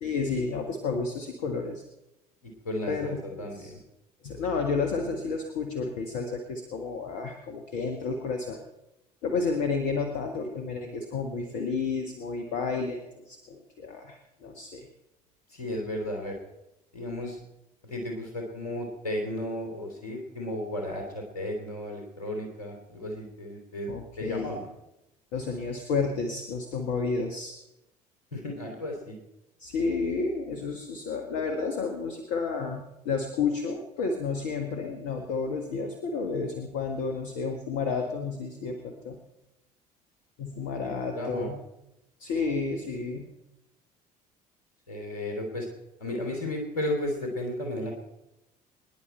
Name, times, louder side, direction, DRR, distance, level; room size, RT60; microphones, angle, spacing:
voice 1, 0.0-1.8 2.9-3.7 4.2-8.6 9.2-14.9 23.9-24.5 25.3-27.6 29.6-39.2 40.4-41.6 42.2-43.3, left 4 dB, 65° left, 4 dB, 1.6 m, -31 dB
voice 2, 2.6-3.8 15.5-16.3 16.9-17.4 17.8-24.7 28.3-29.2 41.1-41.5 44.9-45.7 46.0-47.9, left 1 dB, 85° left, 2 dB, 3.1 m, -34 dB
23.5 x 10.5 x 4.4 m, 0.91 s
figure-of-eight pair, 55°, 19 cm